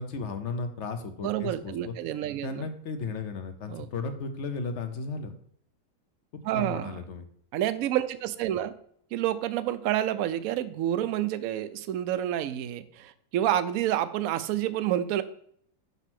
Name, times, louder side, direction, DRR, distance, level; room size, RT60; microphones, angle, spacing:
voice 1, 0.0-1.9 2.4-5.3 6.3-7.3, left 4 dB, 50° left, 7 dB, 1.0 m, -35 dB
voice 2, 1.2-2.7 3.7-3.9 6.4-7.0 7.5-8.7 9.1-15.2, right 12 dB, 65° right, 13 dB, 0.9 m, -29 dB
6.1 x 5.5 x 6.0 m, 0.64 s
omnidirectional pair, 1.8 m